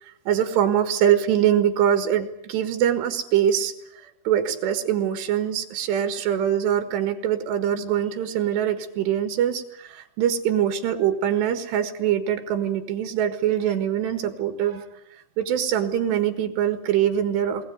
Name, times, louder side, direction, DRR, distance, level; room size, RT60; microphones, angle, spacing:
voice 1, 0.0-14.9 15.1-17.6, right 10 dB, 85° right, 8 dB, 3.7 m, -23 dB
21.5 x 20.0 x 9.5 m, 0.86 s
omnidirectional pair, 4.8 m